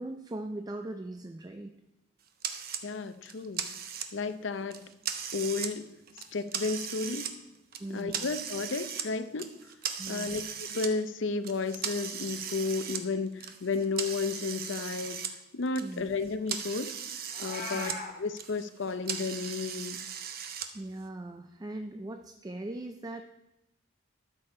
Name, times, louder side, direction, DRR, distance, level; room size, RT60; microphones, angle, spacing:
voice 1, 0.0-1.7 7.8-8.3 10.0-10.4 15.8-16.1 17.7-17.9 20.7-23.2, right 1 dB, 20° right, 7 dB, 0.3 m, -40 dB
sound 1, 2.4-2.8 3.3-4.3 4.7-5.7 6.1-7.3 7.7-9.1 9.4-10.9 11.4-15.3 15.6-18.0 18.3-20.7, right 8 dB, 45° right, 0.8 m, -37 dB
voice 2, 2.8-3.7 4.1-4.8 5.3-5.9 6.3-7.4 7.9-9.5 10.1-15.2 15.5-17.0 17.4-20.0, left 4 dB, 60° left, 11 dB, 0.6 m, -33 dB
Meow, 17.3-18.1, left 3 dB, 40° left, 1.7 m, -38 dB
13.0 x 6.6 x 4.3 m, 0.92 s
head